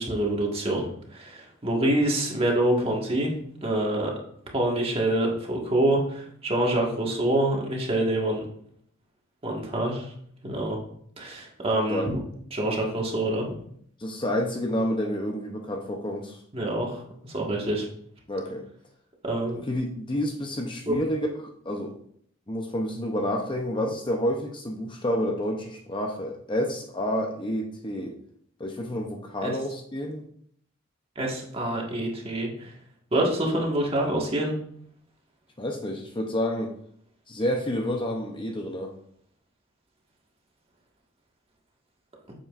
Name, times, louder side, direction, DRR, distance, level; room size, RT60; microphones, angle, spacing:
voice 1, 0.0-3.3 3.6-4.1 4.5-8.4 9.4-10.1 10.4-10.8 11.2-12.2 12.5-13.4 16.5-17.9 19.2-19.6 20.9-21.0 29.4-29.5 31.1-32.7 33.1-34.5, right 1 dB, 25° right, -1 dB, 1.6 m, -26 dB
voice 2, 14.0-16.4 18.3-18.7 19.7-22.0 22.5-28.2 28.6-30.2 35.6-36.7 37.3-38.9, equal, 25° left, 2 dB, 0.7 m, -29 dB
8.5 x 7.3 x 2.5 m, 0.65 s
head